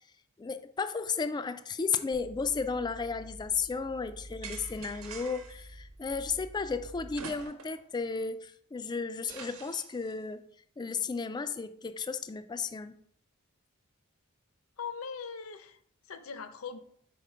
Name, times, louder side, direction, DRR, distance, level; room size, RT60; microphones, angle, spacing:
voice 1, 0.4-10.4 10.8-13.0, left 5 dB, 20° left, 10 dB, 0.3 m, -34 dB
sound 1, 2.1-7.4, equal, 50° right, 1.0 m, -49 dB
sound 2, 4.4-5.6 7.1-7.9 8.2-8.3 9.3-10.1, right 5 dB, 85° right, 1.1 m, -45 dB
voice 2, 14.8-15.8 16.0-16.8, left 6 dB, 75° left, 10 dB, 0.7 m, -40 dB
4.9 x 4.3 x 5.5 m, 0.63 s
head